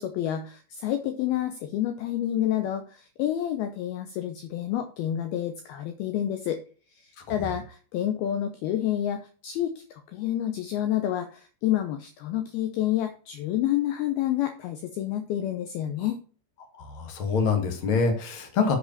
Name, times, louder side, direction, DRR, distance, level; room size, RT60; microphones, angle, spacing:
voice 1, 0.0-6.6 6.9-16.2, left 12 dB, 85° left, 8 dB, 2.2 m, -29 dB
voice 2, 16.8-18.7, left 5 dB, 45° left, 4 dB, 1.8 m, -25 dB
7.9 x 6.0 x 7.2 m, 0.38 s
omnidirectional pair, 5.5 m